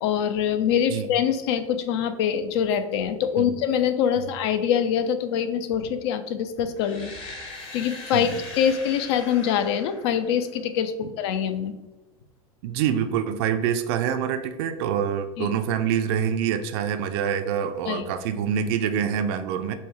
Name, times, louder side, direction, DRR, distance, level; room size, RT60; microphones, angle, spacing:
voice 1, 0.0-7.3 7.7-11.8 15.4-15.5 17.9-18.1, left 8 dB, 50° left, 9 dB, 0.5 m, -24 dB
sound 1, 6.8-10.7, left 3 dB, 30° left, 0.9 m, -41 dB
voice 2, 12.6-19.7, right 8 dB, 50° right, 9 dB, 0.4 m, -26 dB
5.4 x 2.2 x 3.1 m, 1.1 s
figure-of-eight pair, 85°, 18 cm